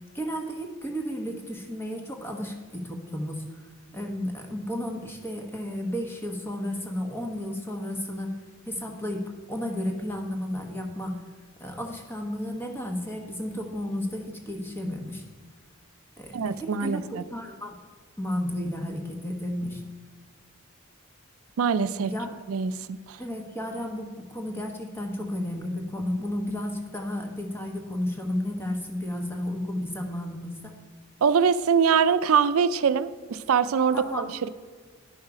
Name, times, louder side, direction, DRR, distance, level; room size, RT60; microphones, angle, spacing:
voice 1, 0.1-8.4 8.7-11.2 11.6-15.2 16.2-17.8 18.2-19.8 22.0-22.3 23.2-30.7 33.9-34.3, left 1 dB, 10° left, 2 dB, 1.1 m, -33 dB
voice 2, 16.3-17.2 21.6-22.1 22.5-23.2 31.2-34.5, right 6 dB, 85° right, 14 dB, 0.4 m, -23 dB
11.0 x 5.6 x 4.9 m, 1.5 s
head